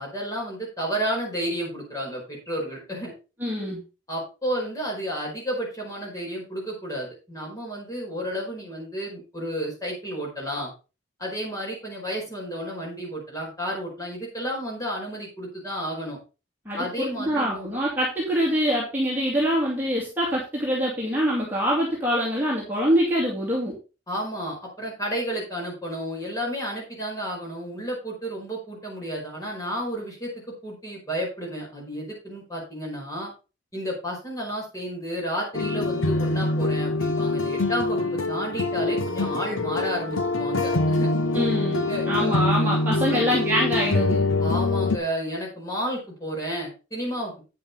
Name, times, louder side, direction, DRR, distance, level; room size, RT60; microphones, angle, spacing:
voice 1, 0.0-3.1 4.1-10.7 11.2-16.2 16.7-17.7 24.1-30.3 30.6-33.3 33.7-41.1 41.9-42.3 43.1-43.3 44.4-47.4, equal, 15° left, -3 dB, 5.1 m, -31 dB
voice 2, 3.4-3.8 16.7-23.7 41.3-44.6, equal, 10° right, -5 dB, 2.5 m, -25 dB
sound 1, 35.5-45.0, left 2 dB, 85° left, 1.0 m, -24 dB
9.7 x 7.7 x 4.3 m, 0.32 s
head